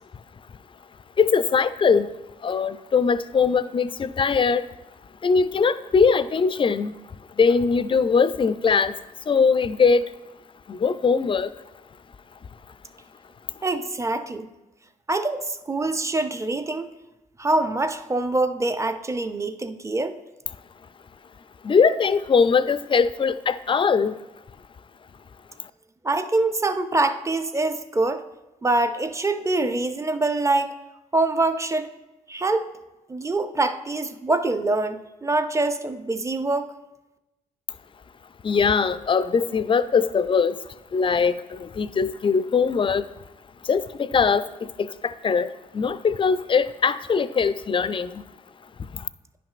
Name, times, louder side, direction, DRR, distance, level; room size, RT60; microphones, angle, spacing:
voice 1, 1.2-2.1 2.4-4.7 5.2-9.0 9.3-10.1 10.7-11.5 21.6-24.2 38.4-40.6 40.9-43.1 43.6-48.2 48.9-49.1, left 5 dB, 30° left, 14 dB, 0.4 m, -21 dB
voice 2, 13.6-14.5 15.1-16.9 17.4-20.2 26.0-28.3 28.6-30.7 31.1-31.9 32.3-32.7 33.1-36.7, right 2 dB, 20° right, 9 dB, 0.6 m, -24 dB
10.0 x 5.9 x 2.5 m, 1.0 s
hypercardioid pair, 50°, 16 cm